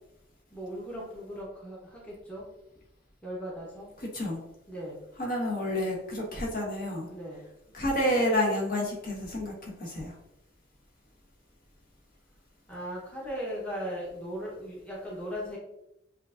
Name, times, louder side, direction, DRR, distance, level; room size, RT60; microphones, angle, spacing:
voice 1, 0.5-2.5 3.2-3.9 4.7-5.0 7.0-7.5 12.7-15.6, equal, 5° left, -6 dB, 0.9 m, -38 dB
voice 2, 5.2-7.1 7.7-10.1, left 1 dB, 45° left, -3 dB, 1.2 m, -29 dB
7.3 x 2.6 x 2.4 m, 0.87 s
head